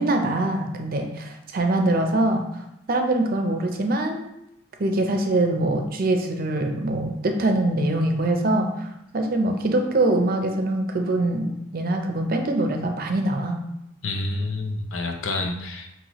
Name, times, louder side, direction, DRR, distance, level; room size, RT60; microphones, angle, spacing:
voice 1, 0.0-2.4 2.9-4.3 4.8-8.9 9.1-13.6, right 2 dB, 50° right, 4 dB, 0.6 m, -23 dB
voice 2, 14.0-15.9, left 2 dB, 85° left, 4 dB, 0.6 m, -28 dB
5.6 x 2.9 x 3.0 m, 0.83 s
head